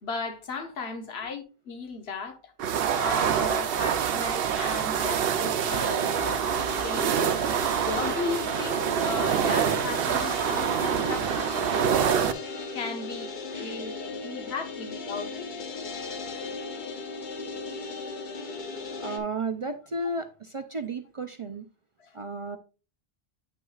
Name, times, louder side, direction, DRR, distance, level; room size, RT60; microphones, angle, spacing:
voice 1, 0.0-2.5 3.0-6.6 6.8-7.4 7.9-12.3 12.7-13.3 13.6-13.9 14.2-15.5 22.0-22.1, left 4 dB, 90° left, 1.3 m, -36 dB
sound 1, 2.6-12.3, right 8 dB, 70° right, 0.8 m, -26 dB
sound 2, 5.6-19.2, left 4 dB, 55° left, 0.9 m, -37 dB
voice 2, 13.5-13.9 19.0-21.7 22.1-22.6, right 2 dB, 45° right, 0.4 m, -33 dB
8.6 x 6.2 x 2.4 m
omnidirectional pair, 1.0 m